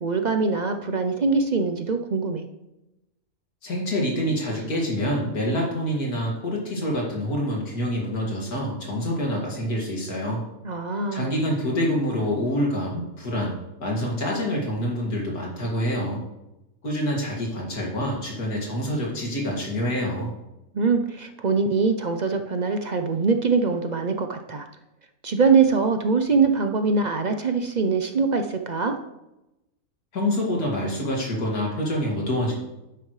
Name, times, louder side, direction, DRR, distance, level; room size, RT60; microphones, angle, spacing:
voice 1, 0.0-2.4 10.6-11.3 20.7-24.6 25.2-29.0, right 4 dB, 50° right, 6 dB, 0.5 m, -23 dB
voice 2, 3.6-10.4 11.1-13.5 13.8-16.2 16.8-20.3 30.1-32.5, equal, 85° left, -2 dB, 2.8 m, -26 dB
11.0 x 9.3 x 3.2 m, 0.93 s
omnidirectional pair, 1.6 m